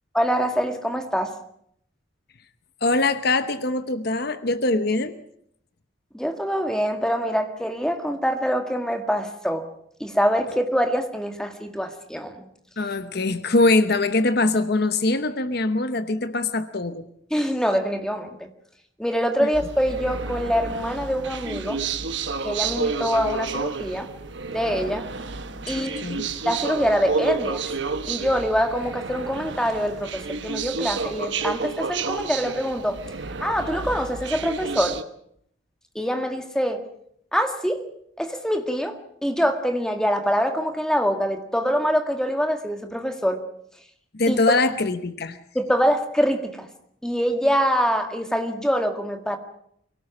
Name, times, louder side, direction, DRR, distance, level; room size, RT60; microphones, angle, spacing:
voice 1, 0.1-1.3 6.1-9.7 10.0-12.4 17.3-18.5 19.0-21.8 22.4-24.1 24.5-25.1 25.6-26.0 26.5-27.7 28.1-33.0 33.4-35.0 36.0-36.8 37.3-37.8 38.2-43.4 44.3-44.4 45.5-46.7 47.0-49.4, equal, 5° left, 5 dB, 1.8 m, -24 dB
voice 2, 2.8-5.2 12.8-17.1 19.4-19.5 25.8-26.3 44.1-45.4, left 2 dB, 50° left, 11 dB, 1.0 m, -23 dB
sound 1, 19.5-35.0, right 4 dB, 60° right, 1.3 m, -30 dB
24.0 x 17.5 x 7.2 m, 0.71 s
head